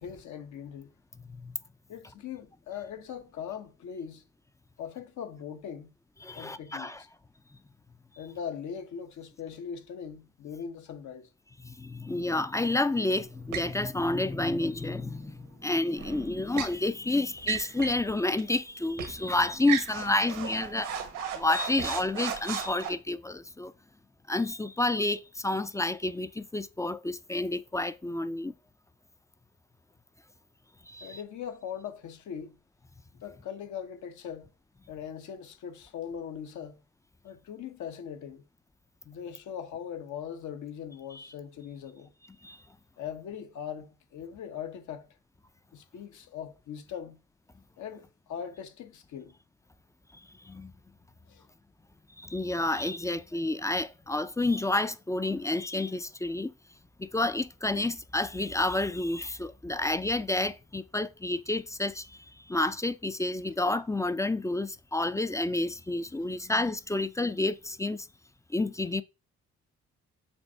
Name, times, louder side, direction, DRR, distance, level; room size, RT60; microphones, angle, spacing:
voice 1, 0.0-0.9 1.9-4.2 4.8-5.9 6.3-7.1 8.2-11.3 31.0-32.6 33.2-34.5 34.9-36.8 37.2-38.4 39.1-42.1 43.0-45.1 45.7-47.2 47.8-49.3 51.3-51.4, left 8 dB, 70° left, 1.1 m, -40 dB
voice 2, 6.2-7.0 11.6-21.0 21.3-23.7 24.3-28.5 30.9-31.2 41.1-41.3 42.4-42.6 50.4-50.7 52.2-56.5 57.0-68.1 68.5-69.0, left 2 dB, 10° left, 0.4 m, -30 dB
sound 1, 13.5-13.8 16.0-16.8 17.4-18.0 18.4-18.5 19.0-19.2 19.6-22.9, right 9 dB, 90° right, 1.5 m, -35 dB
6.9 x 2.6 x 5.5 m
cardioid pair, 90°, 30 cm